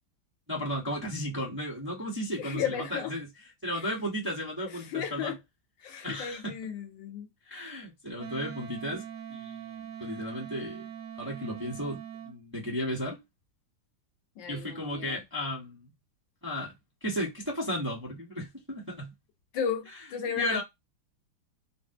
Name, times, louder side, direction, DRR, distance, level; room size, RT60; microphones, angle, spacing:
voice 1, 0.5-3.3 3.6-5.3 6.0-6.6 7.5-10.9 11.2-13.2 14.5-15.9 16.4-16.7 17.0-19.1 20.3-20.6, equal, 10° right, 0.8 m, -34 dB
voice 2, 2.4-3.1 3.7-3.9 4.6-5.4 5.8-7.3 14.4-15.2 19.5-20.6, left 8 dB, 75° left, 1.1 m, -34 dB
Wind instrument woodwind instrument, 8.2-12.3, right 9 dB, 90° right, 1.6 m, -42 dB
3.3 x 2.1 x 2.7 m
omnidirectional pair, 2.2 m